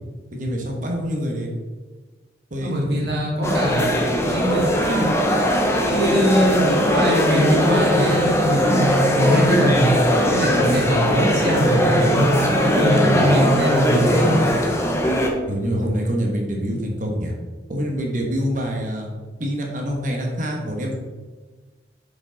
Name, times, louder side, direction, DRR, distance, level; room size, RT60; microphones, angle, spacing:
voice 1, 0.3-1.5 2.5-3.0 13.0-13.3 15.5-17.3 17.7-19.1 19.4-20.9, equal, 45° right, 0 dB, 1.2 m, -26 dB
voice 2, 2.6-3.9 4.1-5.1 5.9-9.9 10.3-14.4, equal, 60° right, -2 dB, 1.8 m, -22 dB
sound 1, 3.4-15.3, equal, 15° left, 0.7 m, -19 dB
6.3 x 5.0 x 4.0 m, 1.3 s
head